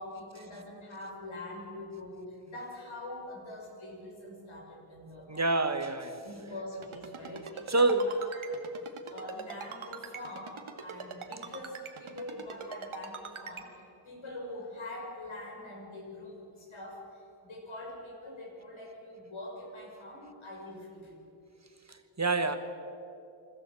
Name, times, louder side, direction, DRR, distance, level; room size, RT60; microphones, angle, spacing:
voice 1, 0.0-5.5 6.2-8.5 9.1-13.7 14.0-17.0 17.4-21.2, left 1 dB, 70° left, 0 dB, 6.1 m, -44 dB
voice 2, 5.3-6.2 7.7-8.1 21.9-22.6, right 2 dB, 30° right, 9 dB, 1.4 m, -27 dB
Ringtone, 6.8-13.6, right 6 dB, 70° right, 2.0 m, -42 dB
26.5 x 14.0 x 7.6 m, 2.7 s
cardioid pair, 60°, 50 cm